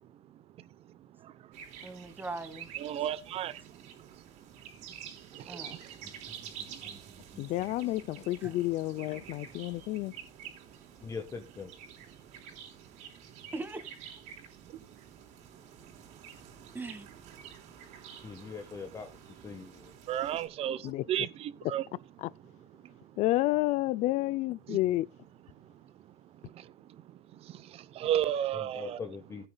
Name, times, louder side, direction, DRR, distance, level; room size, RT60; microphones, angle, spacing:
voice 1, 0.1-2.2 2.7-8.4 8.8-11.1 11.9-13.5 14.3-16.8 17.4-21.9 22.2-23.2 24.7-24.8 25.5-29.0, right 11 dB, 45° right, 0.9 m, -40 dB
sound 1, 1.5-20.5, right 8 dB, 65° right, 3.8 m, -49 dB
voice 2, 1.8-2.7 4.8-4.9 5.5-5.8 6.0-7.5 8.4-8.6 13.5-14.1 16.7-17.1, right 2 dB, 15° right, 2.0 m, -43 dB
voice 3, 7.4-10.1 20.8-21.0 22.2-22.3 23.2-25.1, left 17 dB, 55° left, 0.5 m, -30 dB
voice 4, 11.0-11.7 18.2-19.1 19.4-19.9 28.8-29.4, left 5 dB, 20° left, 1.4 m, -41 dB
16.5 x 8.9 x 2.3 m
supercardioid pair, 120°, 14 cm